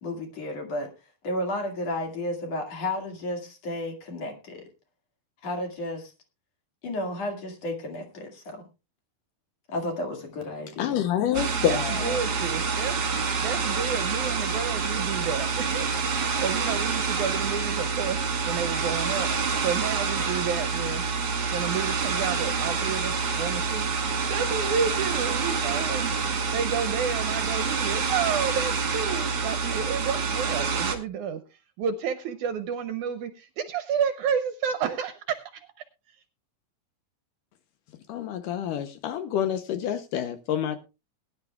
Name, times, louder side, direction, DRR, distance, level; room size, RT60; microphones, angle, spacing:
voice 1, 0.0-0.9 1.2-4.6 5.4-6.1 6.8-8.6 9.7-11.0, left 1 dB, 50° left, 3.0 m, -32 dB
voice 2, 10.8-12.2 38.1-40.8, left 10 dB, 75° left, 2.2 m, -27 dB
sound 1, 11.3-31.0, right 5 dB, 40° right, 1.8 m, -27 dB
voice 3, 11.7-13.0 13.4-19.3 19.6-21.1 21.5-23.9 24.3-26.1 26.5-35.7, right 7 dB, 75° right, 1.9 m, -31 dB
21.0 x 10.5 x 2.3 m
omnidirectional pair, 4.1 m